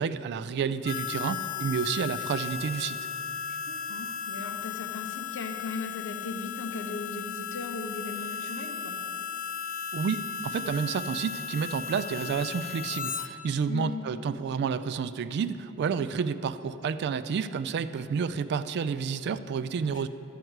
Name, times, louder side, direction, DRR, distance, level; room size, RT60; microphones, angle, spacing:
voice 1, 0.0-3.0 9.9-20.1, right 6 dB, 50° right, 13 dB, 0.3 m, -30 dB
Harmonica, 0.8-13.3, left 8 dB, 40° left, 0.5 m, -36 dB
voice 2, 3.5-9.0 13.7-14.0 19.9-20.1, left 3 dB, 60° left, 4 dB, 0.9 m, -38 dB
12.0 x 4.5 x 7.9 m, 2.9 s
head